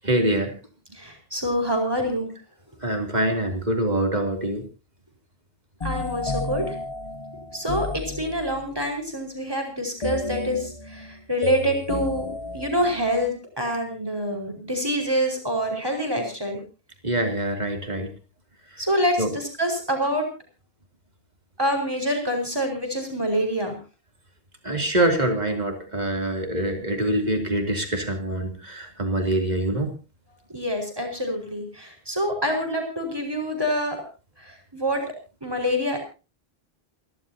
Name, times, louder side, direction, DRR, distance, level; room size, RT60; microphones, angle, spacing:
voice 1, 0.0-0.6 2.8-4.6 17.0-18.1 19.2-19.3 24.6-29.9, right 1 dB, 45° right, 4 dB, 3.3 m, -24 dB
voice 2, 0.9-2.3 5.8-6.8 7.5-16.6 18.8-20.3 21.6-23.8 30.5-34.0 34.4-35.0 35.4-36.0, equal, 25° right, 2 dB, 5.2 m, -26 dB
sound 1, 5.8-8.8 10.0-13.3, left 3 dB, 35° left, 0.9 m, -32 dB
28.5 x 12.5 x 2.8 m, 0.32 s
omnidirectional pair, 1.0 m